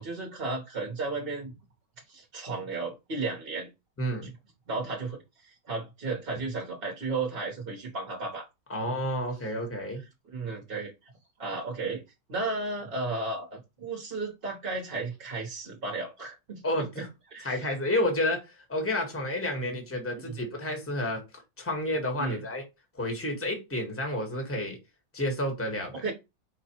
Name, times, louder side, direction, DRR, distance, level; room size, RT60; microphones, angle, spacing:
voice 1, 0.0-1.5 2.1-3.7 4.7-8.5 10.3-10.9 11.4-12.0 12.3-17.1 17.3-17.6 20.3-20.4 22.2-22.4 26.0-26.1, right 3 dB, 40° right, 1.0 m, -34 dB
voice 2, 4.0-4.3 8.7-10.0 16.6-17.1 17.4-21.2 21.6-22.6 22.9-24.8 25.1-26.0, left 1 dB, 10° left, 1.0 m, -30 dB
4.9 x 2.2 x 4.3 m
omnidirectional pair, 1.9 m